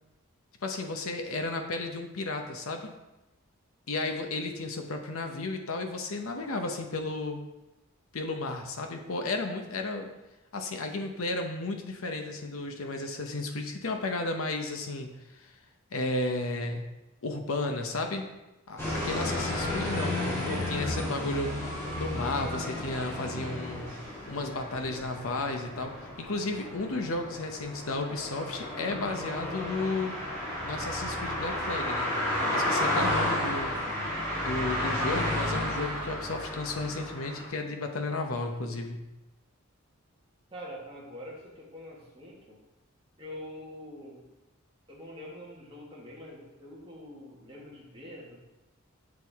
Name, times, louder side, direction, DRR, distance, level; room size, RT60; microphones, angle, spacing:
voice 1, 0.6-2.9 3.9-7.4 8.1-10.1 10.5-15.1 15.4-15.5 15.9-16.9 17.2-18.3 18.7-21.5 22.0-23.9 24.3-25.9 26.2-30.2 30.6-32.1 32.5-33.8 34.4-39.0, left 2 dB, 85° left, 4 dB, 0.8 m, -33 dB
sound 1, 18.8-37.5, left 1 dB, 10° left, 1.7 m, -32 dB
voice 2, 40.5-42.6 43.2-44.2 44.9-48.4, left 1 dB, 25° right, -5 dB, 1.8 m, -45 dB
7.3 x 4.7 x 3.5 m, 1.0 s
head